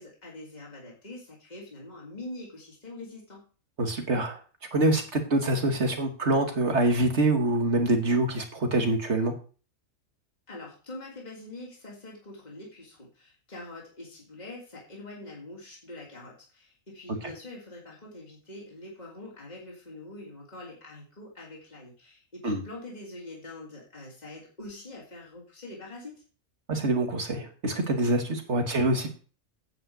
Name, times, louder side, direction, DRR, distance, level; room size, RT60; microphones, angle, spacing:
voice 1, 0.0-3.4 10.5-26.2, left 2 dB, 30° left, -3 dB, 3.2 m, -44 dB
voice 2, 3.8-4.4 4.7-9.3 22.4-22.6 26.7-29.1, right 2 dB, 55° right, 4 dB, 2.3 m, -25 dB
9.3 x 5.6 x 8.0 m, 0.37 s
omnidirectional pair, 1.4 m